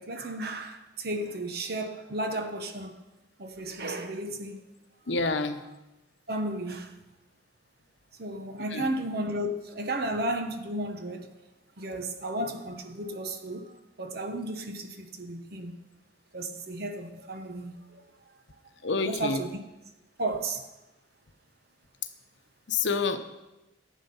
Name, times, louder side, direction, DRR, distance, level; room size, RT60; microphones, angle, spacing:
voice 1, 0.0-3.0 3.4-4.6 5.2-5.4 6.3-6.9 8.2-11.3 11.8-15.7 16.3-18.0 19.0-19.6 20.2-20.7, right 1 dB, 55° right, 1.1 m, -34 dB
voice 2, 5.1-5.6 8.7-8.9 18.8-19.4 22.7-23.2, left 4 dB, 70° left, 0.9 m, -27 dB
12.0 x 8.4 x 5.5 m
head